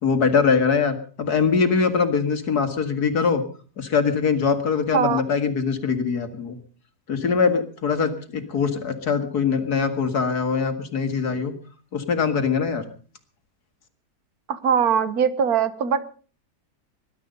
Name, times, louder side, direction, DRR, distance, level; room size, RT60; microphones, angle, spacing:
voice 1, 0.0-3.4 3.8-6.6 7.1-11.5 11.9-12.8, left 5 dB, 70° left, 8 dB, 2.3 m, -22 dB
voice 2, 14.5-16.0, right 7 dB, 65° right, 13 dB, 1.7 m, -21 dB
20.5 x 12.0 x 5.2 m, 0.40 s
omnidirectional pair, 1.8 m